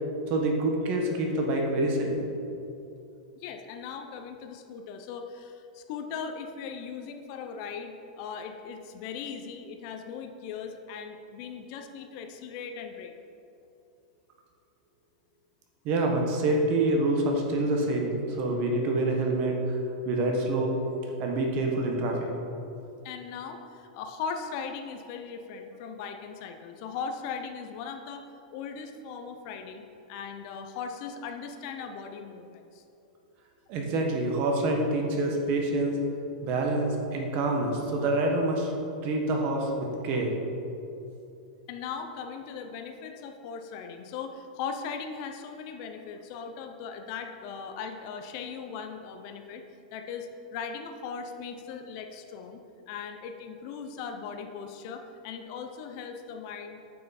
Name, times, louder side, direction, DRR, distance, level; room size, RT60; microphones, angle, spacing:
voice 1, 0.3-2.2 15.8-19.8 20.0-20.8 21.2-22.2 33.7-35.9 36.4-38.7 39.0-40.3, right 2 dB, 35° right, 1 dB, 1.2 m, -26 dB
voice 2, 3.4-13.1 23.0-32.8 41.7-49.6 49.9-56.8, left 6 dB, 40° left, 6 dB, 0.6 m, -39 dB
8.5 x 5.6 x 4.2 m, 2.7 s
supercardioid pair, 155°, 4 cm